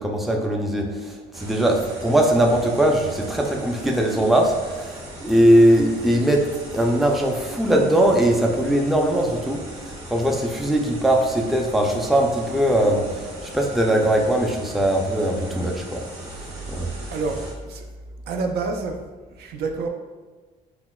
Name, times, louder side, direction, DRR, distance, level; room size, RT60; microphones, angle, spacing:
voice 1, 0.0-9.6 10.1-13.0 13.4-16.0 16.7-16.9, right 1 dB, ahead, 1 dB, 0.4 m, -20 dB
sound 1, 1.3-17.5, right 1 dB, 40° right, 1.4 m, -38 dB
voice 2, 17.1-17.9 18.3-19.0 19.3-19.9, right 4 dB, 70° right, 4 dB, 0.5 m, -28 dB
5.8 x 2.2 x 2.2 m, 1.4 s
cardioid pair, 110°, 17 cm